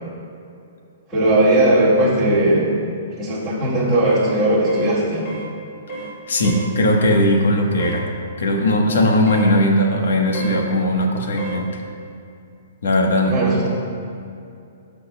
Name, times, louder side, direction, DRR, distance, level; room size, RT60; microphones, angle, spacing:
voice 1, 1.1-2.7 3.2-5.2 13.2-13.7, right 1 dB, 5° left, -12 dB, 2.0 m, -18 dB
sound 1, 4.1-4.3 4.7-4.9 5.3-5.5 5.9-6.1 6.4-6.7 7.8-8.0 9.3-9.5 10.3-10.6 11.4-11.6, right 2 dB, 25° left, 2.1 m, -32 dB
voice 2, 6.3-8.1 8.4-11.7 12.8-13.4, left 1 dB, 80° left, 1 dB, 1.3 m, -18 dB
15.5 x 6.0 x 2.3 m, 2.5 s
hypercardioid pair, 175°, 0 cm